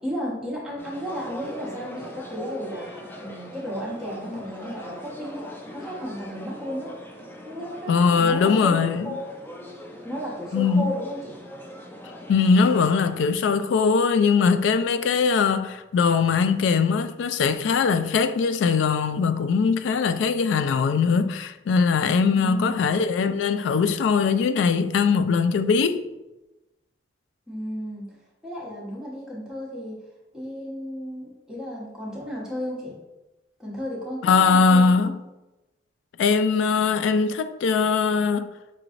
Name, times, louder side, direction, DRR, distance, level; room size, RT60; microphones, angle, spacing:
voice 1, 0.0-6.9 7.4-9.2 10.0-11.4 22.4-22.9 27.5-28.0 28.4-30.0 30.3-32.9 33.6-35.1, equal, 5° right, 1.1 m, -33 dB
sound 1, 0.8-13.3, equal, 10° left, 0.4 m, -41 dB
voice 2, 7.9-9.1 10.5-10.9 12.3-26.0 34.2-35.2 36.2-38.5, left 5 dB, 90° left, 0.3 m, -21 dB
5.7 x 3.1 x 2.5 m
head